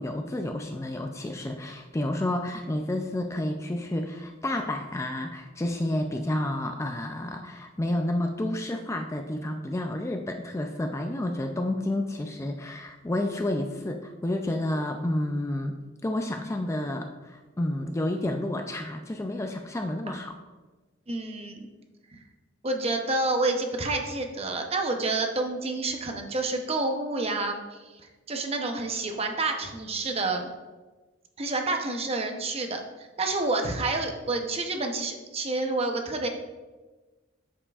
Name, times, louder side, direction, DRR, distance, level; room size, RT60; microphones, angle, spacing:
voice 1, 0.0-15.7 16.0-20.3, left 1 dB, 15° left, 4 dB, 0.3 m, -30 dB
voice 2, 21.1-21.7 22.1-22.2 22.6-27.8 28.3-30.5 31.4-36.3, right 2 dB, 30° right, 4 dB, 0.7 m, -29 dB
8.5 x 7.3 x 2.4 m, 1.2 s
head